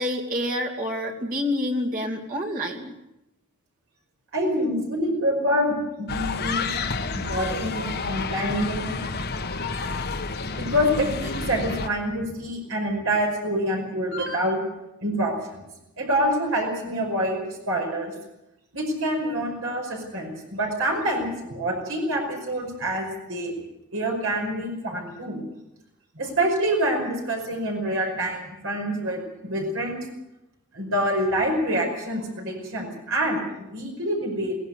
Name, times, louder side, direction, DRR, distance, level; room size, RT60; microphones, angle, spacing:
voice 1, 0.0-2.9, left 1 dB, 40° right, 0 dB, 2.8 m, -28 dB
voice 2, 4.3-6.6 7.1-9.0 9.6-9.7 10.6-14.6 15.0-15.6 16.0-18.1 18.7-23.5 23.9-25.4 26.2-30.0 30.7-34.5, equal, 65° right, 1 dB, 5.4 m, -26 dB
sound 1, 6.1-11.9, left 4 dB, 50° left, 1.4 m, -30 dB
21.5 x 17.5 x 8.0 m, 0.90 s
head